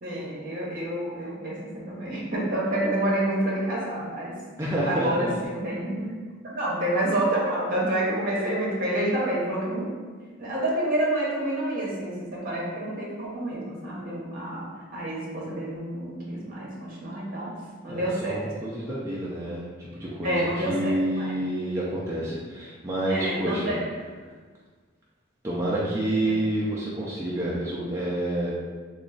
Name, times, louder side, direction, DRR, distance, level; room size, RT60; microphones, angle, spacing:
voice 1, 0.0-4.4 4.9-6.1 6.4-9.9 10.4-17.6 17.8-18.4 20.2-21.3 23.1-23.8, right 1 dB, 40° right, -5 dB, 0.9 m, -28 dB
voice 2, 4.6-5.4 17.9-23.8 25.4-28.5, right 1 dB, 15° right, -6 dB, 0.4 m, -28 dB
2.9 x 2.4 x 3.7 m, 1.5 s
head